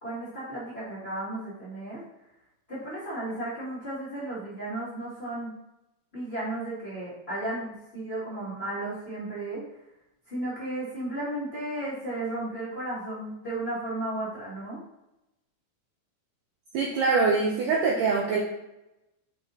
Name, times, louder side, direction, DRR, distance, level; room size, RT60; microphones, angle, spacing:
voice 1, 0.0-2.0 2.7-5.5 6.1-9.6 10.3-14.8, right 1 dB, 25° left, -11 dB, 1.6 m, -34 dB
voice 2, 16.7-18.4, right 4 dB, 90° right, -2 dB, 1.8 m, -24 dB
6.9 x 5.5 x 2.8 m, 0.91 s
omnidirectional pair, 4.8 m